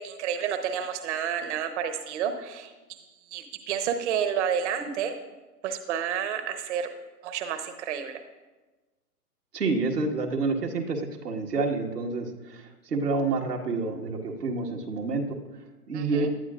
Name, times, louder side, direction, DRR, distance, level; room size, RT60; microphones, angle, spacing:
voice 1, 0.0-3.0 3.3-5.2 5.6-6.9 7.2-8.2 15.9-16.3, right 8 dB, 50° right, 7 dB, 1.1 m, -30 dB
voice 2, 9.5-15.4 15.9-16.3, right 3 dB, 85° right, 1 dB, 1.8 m, -28 dB
18.0 x 11.5 x 2.5 m, 1.2 s
hypercardioid pair, 125°, 46 cm